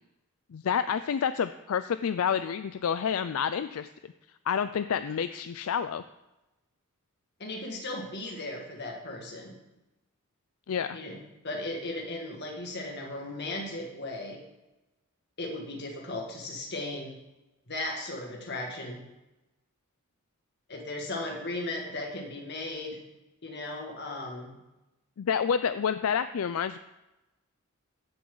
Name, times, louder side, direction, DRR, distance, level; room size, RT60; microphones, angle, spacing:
voice 1, 0.5-3.9 4.5-6.0 10.7-11.0 25.2-26.8, left 7 dB, 75° left, 12 dB, 0.4 m, -29 dB
voice 2, 7.4-9.6 10.9-14.4 15.4-17.2 17.7-19.0 20.7-23.0 23.4-24.5, left 2 dB, 55° left, 1 dB, 2.1 m, -36 dB
15.5 x 7.1 x 4.0 m, 0.98 s
head